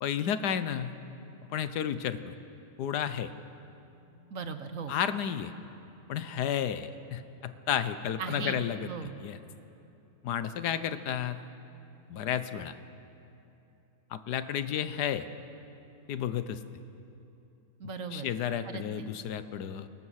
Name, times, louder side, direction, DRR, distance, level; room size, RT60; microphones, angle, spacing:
voice 1, 0.0-0.9 1.5-2.3 2.8-3.3 4.9-5.5 6.1-8.9 9.2-9.4 10.2-11.4 12.1-12.7 14.1-15.3 16.1-16.6 18.1-19.9, left 9 dB, 85° left, 12 dB, 1.4 m, -32 dB
sound 1, 3.1-5.7, left 1 dB, 20° right, 5.4 m, -58 dB
voice 2, 4.3-4.9 8.2-9.2 17.8-18.3 18.6-19.1, right 5 dB, 60° right, 8 dB, 1.3 m, -38 dB
22.0 x 19.5 x 6.4 m, 2.9 s
omnidirectional pair, 1.7 m